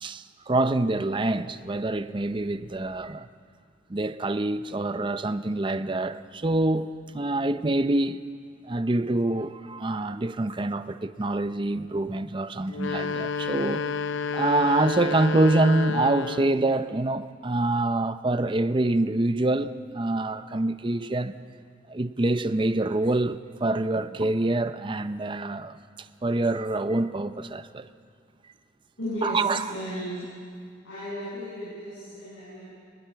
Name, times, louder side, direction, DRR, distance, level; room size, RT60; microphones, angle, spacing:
voice 1, 0.0-3.3 3.9-8.2 8.7-13.8 14.3-21.3 21.9-25.8 26.2-27.9 29.2-29.6, right 2 dB, 25° right, 0.6 m, -26 dB
sound 1, 12.7-16.7, left 5 dB, 70° left, 0.6 m, -30 dB
voice 2, 29.0-30.4 30.8-32.7, equal, 90° left, 7.7 m, -35 dB
23.0 x 21.0 x 5.8 m
head